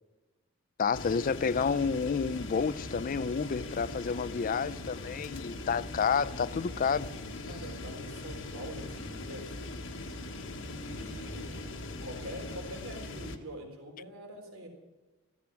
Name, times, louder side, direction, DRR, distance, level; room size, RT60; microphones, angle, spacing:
voice 1, 0.8-7.1, left 5 dB, 40° left, 0.4 m, -30 dB
sound 1, 0.9-13.4, left 2 dB, 65° left, 1.4 m, -40 dB
voice 2, 7.5-9.6 10.9-14.7, equal, 80° right, 3.5 m, -45 dB
15.0 x 14.5 x 6.0 m
head